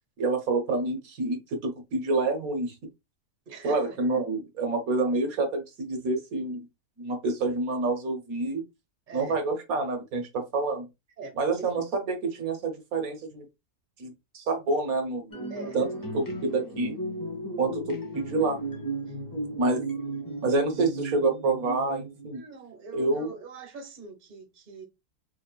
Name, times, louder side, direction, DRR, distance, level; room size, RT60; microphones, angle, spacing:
voice 1, 0.2-2.7 3.6-6.7 7.0-8.6 9.1-10.9 11.4-13.5 14.0-15.3 15.7-15.9 16.1-17.0 17.6-18.6 19.5-19.9 20.4-22.4 22.9-23.3, right 3 dB, 65° right, 1.4 m, -28 dB
voice 2, 3.5-4.0 9.1-9.4 11.2-11.6 15.5-15.8 19.1-19.2 22.3-24.8, right 4 dB, 35° right, 1.2 m, -42 dB
sound 1, 15.3-22.4, right 2 dB, 15° left, 0.9 m, -35 dB
4.9 x 2.9 x 2.3 m
omnidirectional pair, 1.7 m